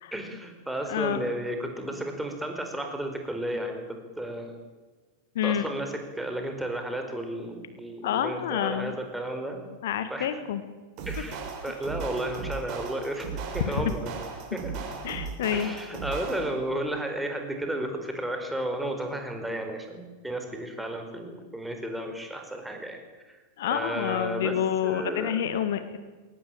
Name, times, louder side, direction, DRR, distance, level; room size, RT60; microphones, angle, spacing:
voice 1, 0.1-4.6 5.4-9.7 10.1-10.3 11.1-14.1 14.5-14.8 15.5-23.0 23.3-23.4 23.7-25.4, right 1 dB, 5° right, 4 dB, 4.9 m, -33 dB
voice 2, 0.9-1.3 5.3-5.7 8.0-8.9 9.8-10.6 13.7-13.8 15.0-15.7 23.6-26.0, left 10 dB, 55° left, 11 dB, 1.7 m, -28 dB
sound 1, 11.0-16.7, right 5 dB, 40° right, 6.6 m, -36 dB
22.0 x 18.5 x 9.0 m, 1.3 s
figure-of-eight pair, 90°, 0 cm